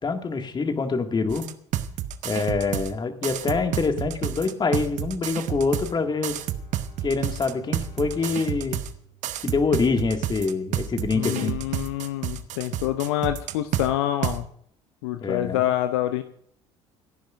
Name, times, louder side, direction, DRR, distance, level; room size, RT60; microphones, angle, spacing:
voice 1, 0.0-1.5 2.2-6.4 7.0-8.8 9.4-11.5 15.2-15.7, left 4 dB, 30° left, 5 dB, 2.1 m, -25 dB
sound 1, 1.3-2.9 3.2-5.9 6.2-8.9 9.2-13.9 14.2-14.4, right 12 dB, 55° right, 1.0 m, -29 dB
Bowed string instrument, 5.8-10.2, right 5 dB, 45° left, 5.5 m, -49 dB
voice 2, 11.1-14.5 15.0-16.2, left 13 dB, 70° left, 10 dB, 0.7 m, -26 dB
28.5 x 10.5 x 2.6 m, 0.64 s
figure-of-eight pair, 55°, 15 cm